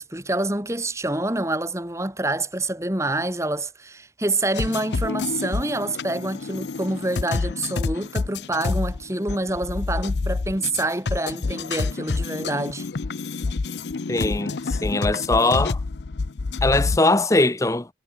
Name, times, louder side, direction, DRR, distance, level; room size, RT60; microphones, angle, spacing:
voice 1, 0.0-12.9, right 2 dB, 15° right, 2.7 m, -27 dB
sound 1, 4.5-17.0, left 3 dB, 75° left, 0.6 m, -28 dB
voice 2, 14.1-15.8 16.6-17.9, left 2 dB, 20° left, 0.7 m, -21 dB
head